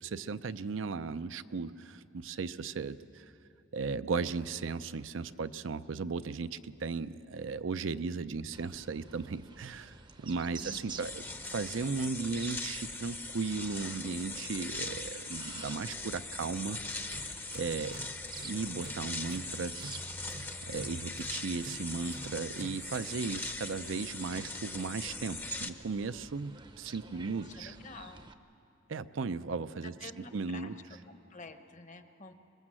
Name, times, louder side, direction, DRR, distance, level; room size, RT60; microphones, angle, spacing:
voice 1, 0.0-3.2 3.7-16.8 17.5-18.0 18.4-19.8 20.6-27.7 28.9-29.9 30.3-30.7, right 4 dB, 75° right, 12 dB, 0.5 m, -36 dB
sound 1, 8.5-28.3, right 3 dB, 25° right, 0.7 m, -51 dB
voice 2, 10.6-11.0 27.1-28.3 29.8-32.3, left 3 dB, 40° left, 9 dB, 0.9 m, -50 dB
sound 2, 11.0-25.7, left 2 dB, 10° left, 0.7 m, -40 dB
Tools, 16.7-23.3, right 3 dB, 55° right, 0.9 m, -50 dB
24.5 x 21.0 x 7.6 m, 2.8 s
head